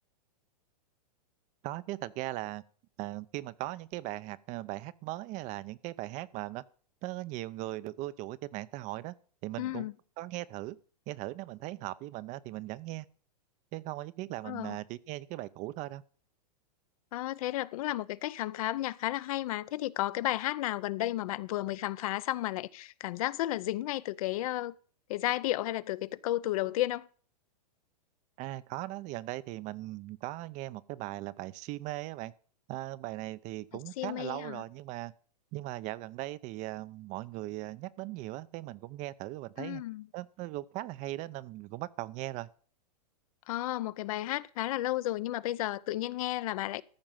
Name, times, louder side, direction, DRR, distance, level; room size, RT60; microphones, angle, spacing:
voice 1, 1.6-2.6 3.0-6.6 7.0-9.1 9.4-9.9 10.2-10.8 11.1-13.1 13.7-16.0 28.4-32.3 32.7-35.1 35.5-39.8 40.1-42.5, right 17 dB, 35° right, 0.6 m, -39 dB
voice 2, 9.6-9.9 14.4-14.8 17.1-24.7 25.1-27.1 34.0-34.6 39.6-40.1 43.5-46.8, left 15 dB, 55° left, 0.7 m, -33 dB
14.0 x 5.2 x 7.4 m
hypercardioid pair, 125°, 21 cm